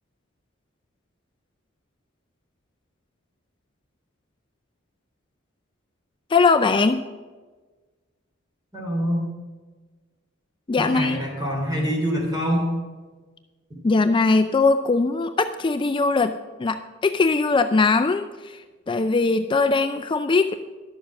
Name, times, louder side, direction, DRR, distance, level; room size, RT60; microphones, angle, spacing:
voice 1, 6.3-7.0 10.7-11.2 13.8-16.3 16.6-18.6 18.9-20.5, left 3 dB, 25° left, 8 dB, 0.4 m, -20 dB
voice 2, 8.7-9.2 10.8-12.6 13.7-13.8, equal, 20° right, -2 dB, 3.2 m, -25 dB
11.5 x 7.1 x 7.5 m, 1.3 s
head